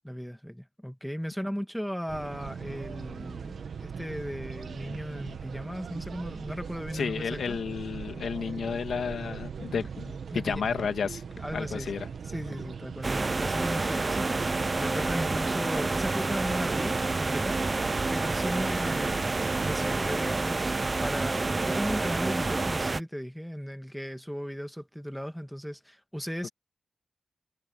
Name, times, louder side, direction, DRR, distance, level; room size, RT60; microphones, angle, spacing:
voice 1, 0.1-7.6 10.3-10.6 11.4-11.9 12.2-19.3 19.6-26.5, equal, ahead, 2.1 m, -36 dB
sound 1, 2.1-19.9, right 6 dB, 75° right, 1.5 m, -40 dB
voice 2, 6.9-11.2 11.5-12.1, left 6 dB, 80° left, 1.9 m, -32 dB
sound 2, 9.8-10.0 10.3-10.5 10.8-11.0 11.3-13.3 13.6-13.9 14.2-19.5 19.9-20.1 20.5-20.7 21.1-21.2, left 3 dB, 35° left, 7.2 m, -54 dB
sound 3, 13.0-23.0, right 3 dB, 30° right, 0.4 m, -28 dB
wide cardioid pair, 140°, 0 cm